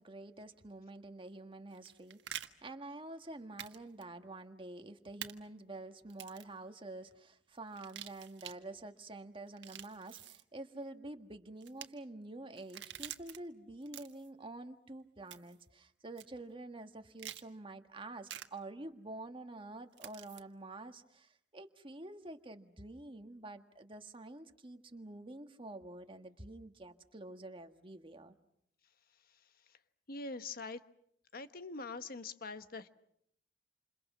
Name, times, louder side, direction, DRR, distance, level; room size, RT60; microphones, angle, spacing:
voice 1, 0.0-28.3, right 2 dB, 30° right, 6 dB, 1.6 m, -48 dB
sound 1, 1.7-2.5 3.6-3.8 4.0-4.1 5.2-5.3 6.1-6.5 7.7-8.6 9.5-10.4 11.6-11.9 12.6-13.4 13.8-14.3 15.3-15.6 16.2-16.3 17.2-17.4 18.3-18.5 20.0-20.4, right 10 dB, 80° right, 1.6 m, -47 dB
voice 2, 30.1-30.8 31.3-32.9, left 3 dB, 55° left, 10 dB, 1.3 m, -43 dB
29.0 x 28.0 x 6.1 m, 0.73 s
head